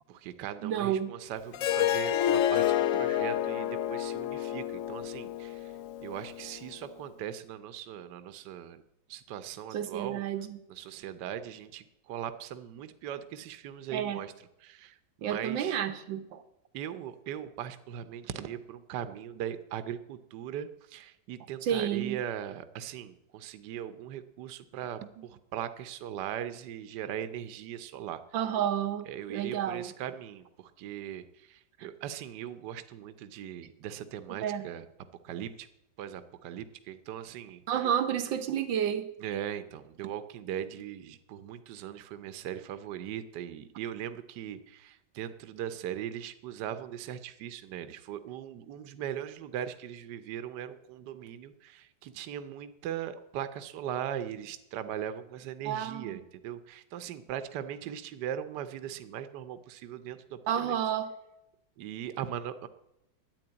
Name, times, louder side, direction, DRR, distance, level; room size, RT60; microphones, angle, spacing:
voice 1, 0.1-5.7 6.0-8.8 9.1-10.2 10.7-14.3 14.6-15.8 16.7-28.2 29.1-34.9 35.2-35.7 36.0-37.6 39.2-60.9 61.8-62.7, right 10 dB, 70° right, 1.3 m, -39 dB
voice 2, 0.6-1.1 9.7-10.6 13.9-14.2 15.2-16.4 21.6-22.2 28.3-29.9 31.8-31.9 34.4-34.6 37.7-39.1 55.7-56.2 60.5-61.1, right 9 dB, 90° right, 1.8 m, -30 dB
Harp, 1.5-6.7, left 11 dB, 75° left, 0.7 m, -29 dB
11.0 x 9.7 x 8.6 m
omnidirectional pair, 2.0 m